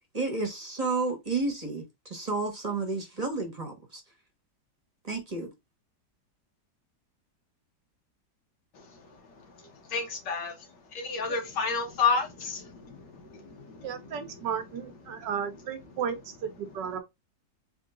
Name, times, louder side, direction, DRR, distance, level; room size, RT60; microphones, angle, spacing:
voice 1, 0.1-4.0 5.0-5.5, right 3 dB, 25° right, 1.1 m, -31 dB
voice 2, 8.7-14.5 15.1-15.3, left 5 dB, 75° left, 2.0 m, -32 dB
voice 3, 13.8-17.0, right 7 dB, 75° right, 1.5 m, -34 dB
4.6 x 3.0 x 3.7 m
omnidirectional pair, 1.9 m